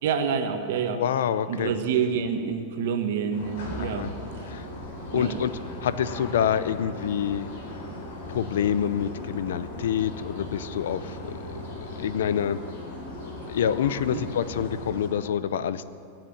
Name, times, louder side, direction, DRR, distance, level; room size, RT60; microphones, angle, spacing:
voice 1, 0.0-1.0 1.5-4.1 4.4-4.5 5.1-5.4 14.1-14.2, right 7 dB, 65° right, 6 dB, 1.4 m, -27 dB
voice 2, 0.9-1.7 3.8-4.1 4.5-4.7 5.1-5.5 5.8-7.5 8.3-12.6 13.5-15.9, left 9 dB, 90° left, 15 dB, 0.6 m, -27 dB
sound 1, 3.3-15.1, left 1 dB, 70° left, 4.1 m, -38 dB
17.0 x 7.4 x 8.7 m, 2.5 s
supercardioid pair, 155°, 0 cm